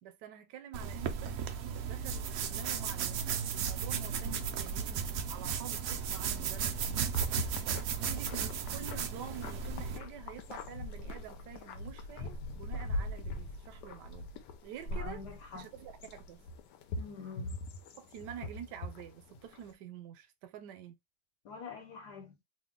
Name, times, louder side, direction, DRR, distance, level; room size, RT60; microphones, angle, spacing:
voice 1, 0.0-6.9 8.0-14.3 14.6-15.2 15.5-16.5 18.0-21.0, right 9 dB, 90° right, 1.2 m, -48 dB
sound 1, 0.7-10.0, right 7 dB, 70° right, 0.9 m, -35 dB
sound 2, 6.8-19.7, left 2 dB, 85° left, 1.3 m, -42 dB
voice 2, 14.9-15.7 17.0-17.6 21.4-22.4, left 4 dB, 70° left, 1.6 m, -45 dB
3.1 x 2.2 x 3.6 m
omnidirectional pair, 1.8 m